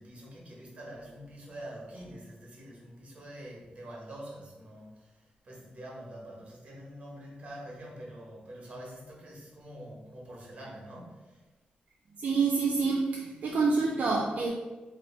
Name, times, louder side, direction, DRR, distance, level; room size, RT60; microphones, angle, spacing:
voice 1, 0.0-11.4, right 1 dB, 40° right, -2 dB, 1.2 m, -46 dB
voice 2, 12.2-14.5, right 4 dB, 60° right, -2 dB, 0.5 m, -27 dB
3.0 x 2.6 x 4.3 m, 1.2 s
wide cardioid pair, 125°, 3 cm